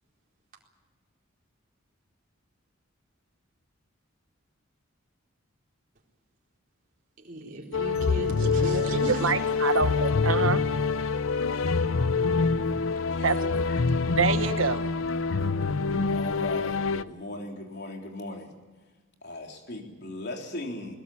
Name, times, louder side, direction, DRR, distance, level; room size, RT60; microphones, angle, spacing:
voice 1, 7.2-9.3, right 1 dB, 45° right, 4.3 m, -34 dB
sound 1, 7.7-17.0, left 4 dB, 75° left, 0.7 m, -26 dB
voice 2, 9.1-10.6 13.2-13.4 14.2-14.9, right 5 dB, 75° right, 1.3 m, -26 dB
voice 3, 13.1-14.0 15.3-15.4 16.1-18.5 19.2-21.0, left 2 dB, 55° left, 3.5 m, -38 dB
21.5 x 21.0 x 8.4 m
head